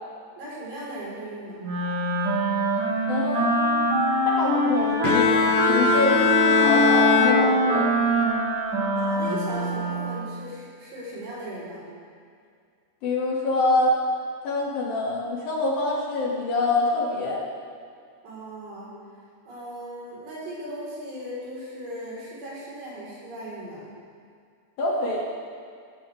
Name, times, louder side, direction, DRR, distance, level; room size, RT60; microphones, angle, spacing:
voice 1, 0.4-1.7 8.9-11.9 18.2-19.0 19.5-23.9, right 1 dB, 70° right, -7 dB, 7.0 m, -37 dB
Wind instrument woodwind instrument, 1.6-10.3, right 2 dB, 50° right, 3.7 m, -24 dB
voice 2, 3.1-3.8 4.3-7.9 13.0-14.0 14.4-17.4 24.8-25.3, left 2 dB, 55° left, -4 dB, 4.1 m, -25 dB
Bowed string instrument, 5.0-8.2, left 8 dB, 80° left, 2.9 m, -22 dB
18.0 x 17.5 x 3.7 m, 2.2 s
omnidirectional pair, 5.1 m